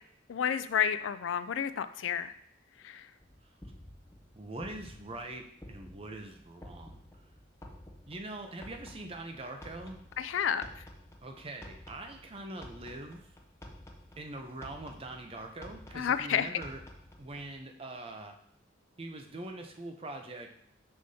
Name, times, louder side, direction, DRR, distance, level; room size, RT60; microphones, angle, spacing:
voice 1, 0.3-2.3 2.8-3.0 10.2-10.7 16.0-16.5, left 8 dB, 85° left, 13 dB, 0.4 m, -30 dB
sound 1, 3.2-17.6, left 1 dB, 15° left, 0.5 m, -52 dB
voice 2, 4.3-7.0 8.1-10.0 11.2-13.3 14.2-16.8 17.2-18.4 19.0-20.5, right 2 dB, 30° right, 4 dB, 0.6 m, -43 dB
6.4 x 5.7 x 2.8 m, 0.67 s
head